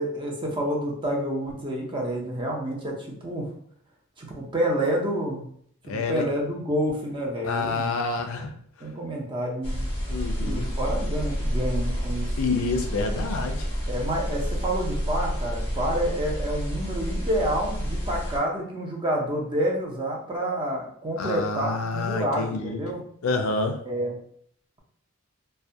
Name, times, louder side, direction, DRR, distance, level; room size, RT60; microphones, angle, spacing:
voice 1, 0.0-3.0 3.2-3.5 4.2-5.5 5.9-7.9 8.8-9.8 10.4-12.3 13.9-23.0 23.8-24.2, right 1 dB, 25° right, -1 dB, 0.5 m, -28 dB
voice 2, 5.9-6.2 7.4-8.5 10.1-10.7 12.4-13.7 21.2-22.8 23.2-23.8, left 3 dB, 70° left, 5 dB, 0.4 m, -28 dB
sound 1, 9.6-18.4, equal, 25° left, 0.8 m, -29 dB
2.2 x 2.1 x 2.7 m, 0.63 s
head